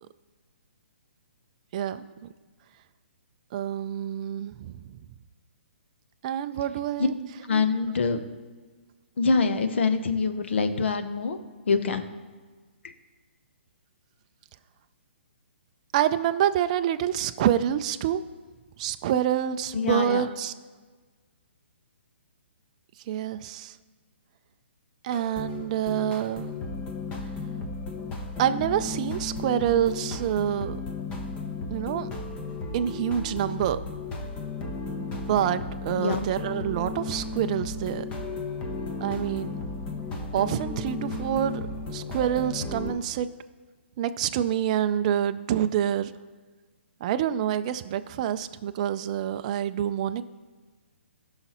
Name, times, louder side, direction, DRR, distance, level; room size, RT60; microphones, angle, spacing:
voice 1, 1.7-2.0 3.5-4.8 6.2-7.2 15.9-18.2 18.8-20.5 23.1-23.8 25.0-26.5 28.4-30.8 31.7-32.1 32.7-33.8 35.0-38.1 39.0-39.5 40.3-41.6 41.9-43.3 44.0-46.1 47.0-50.2, right 10 dB, 35° right, 10 dB, 0.4 m, -27 dB
voice 2, 7.5-8.2 9.2-11.4 11.7-12.0 19.7-20.3 36.0-36.2, left 4 dB, 65° left, 9 dB, 0.9 m, -24 dB
sound 1, 25.1-42.9, left 3 dB, 15° left, 0.9 m, -34 dB
15.5 x 5.7 x 3.0 m, 1.4 s
hypercardioid pair, 150°, 7 cm